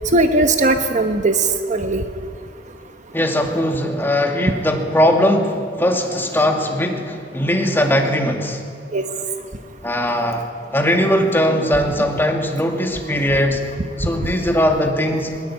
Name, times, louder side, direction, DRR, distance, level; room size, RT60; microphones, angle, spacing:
voice 1, 0.1-2.0 8.9-9.0, right 2 dB, 45° right, 7 dB, 1.1 m, -18 dB
voice 2, 3.1-8.6 9.8-10.5 10.7-13.6 14.0-15.4, equal, 10° left, 2 dB, 2.4 m, -19 dB
21.5 x 21.0 x 8.7 m, 2.1 s
head